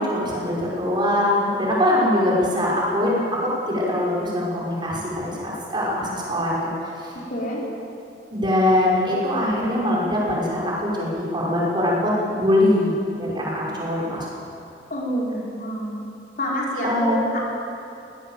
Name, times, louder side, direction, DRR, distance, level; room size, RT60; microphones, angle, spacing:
voice 1, 0.0-3.3 3.7-7.1 8.3-12.9 13.2-14.3 16.8-17.3, left 1 dB, 25° right, -5 dB, 5.8 m, -22 dB
voice 2, 7.3-7.6 14.9-16.0 16.4-17.4, equal, 50° left, -3 dB, 4.7 m, -27 dB
22.0 x 17.5 x 7.7 m, 2.8 s
head